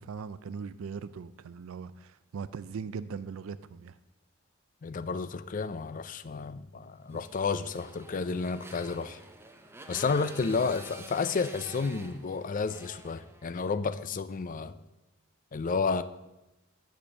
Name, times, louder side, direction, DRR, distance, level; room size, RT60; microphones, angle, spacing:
voice 1, 0.0-4.0 7.1-7.2, right 5 dB, 85° right, 15 dB, 0.4 m, -40 dB
voice 2, 4.8-9.2 9.9-14.8 15.5-16.0, left 4 dB, 40° left, 13 dB, 0.4 m, -31 dB
Motorcycle, 7.1-13.8, right 1 dB, 10° right, 0.7 m, -48 dB
8.5 x 5.1 x 7.5 m, 0.98 s
head